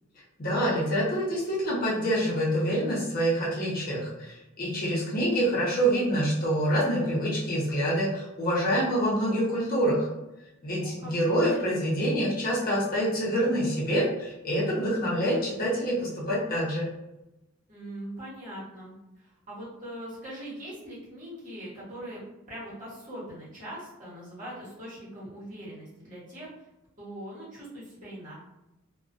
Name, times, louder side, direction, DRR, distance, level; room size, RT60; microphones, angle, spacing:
voice 1, 0.4-10.1 10.6-16.9, equal, 45° left, -6 dB, 0.7 m, -26 dB
voice 2, 10.8-11.9 17.7-22.2 22.5-26.5 27.0-28.3, right 1 dB, 35° right, -8 dB, 1.1 m, -42 dB
2.3 x 2.2 x 2.5 m, 0.93 s
head